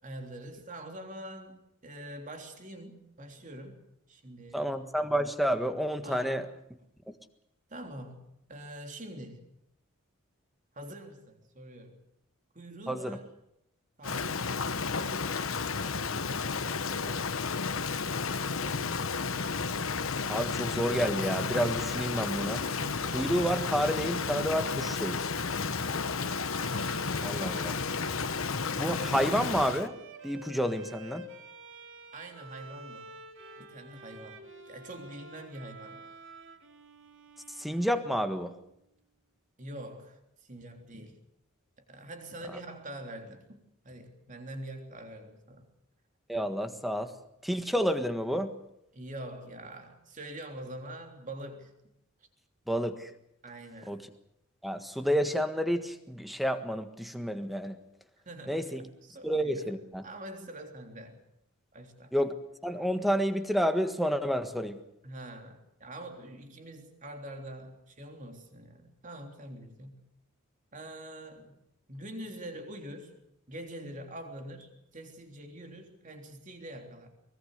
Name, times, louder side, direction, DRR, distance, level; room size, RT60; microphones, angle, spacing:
voice 1, 0.0-3.8 4.1-4.8 6.0-6.5 7.7-9.5 10.7-12.0 12.5-13.3 14.0-17.8 18.3-19.1 25.7-26.1 32.1-33.1 33.6-36.1 39.6-41.2 41.8-43.6 43.8-45.7 48.9-51.7 53.4-54.0 58.3-58.7 59.0-61.2 61.7-62.1 65.0-70.0 70.7-71.6 71.9-73.2 73.5-77.1, right 1 dB, 35° right, 4 dB, 3.4 m, -45 dB
voice 2, 4.5-6.4 12.9-13.2 20.3-22.6 23.1-25.2 27.2-27.8 28.8-29.9 30.2-31.3 37.6-38.5 46.3-47.1 47.4-48.5 52.7-53.1 53.9-54.0 54.6-57.7 58.5-58.8 59.2-60.0 62.1-62.3 62.6-64.8, equal, ahead, 8 dB, 1.5 m, -29 dB
Rain, 14.0-29.9, left 5 dB, 70° left, 1.1 m, -32 dB
Bowed string instrument, 21.8-38.4, right 2 dB, 60° right, 2.8 m, -49 dB
23.5 x 21.0 x 6.7 m, 0.79 s
head